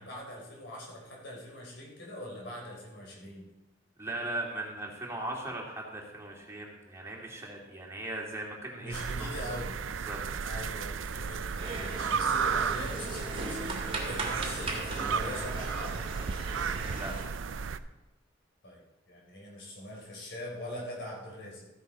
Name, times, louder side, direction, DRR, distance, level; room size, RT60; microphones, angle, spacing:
voice 1, 0.0-3.5 8.7-9.7 10.4-16.0 18.6-21.7, left 1 dB, 65° left, -1 dB, 3.8 m, -42 dB
voice 2, 4.0-8.9 9.2-9.3 10.0-10.2 14.1-14.2 16.9-17.4, right 2 dB, 15° right, -1 dB, 2.5 m, -38 dB
sound 1, 8.9-17.8, right 6 dB, 85° right, 0.5 m, -34 dB
sound 2, 11.6-17.3, right 2 dB, 30° right, 2.1 m, -38 dB
14.5 x 10.5 x 4.2 m, 1.0 s
head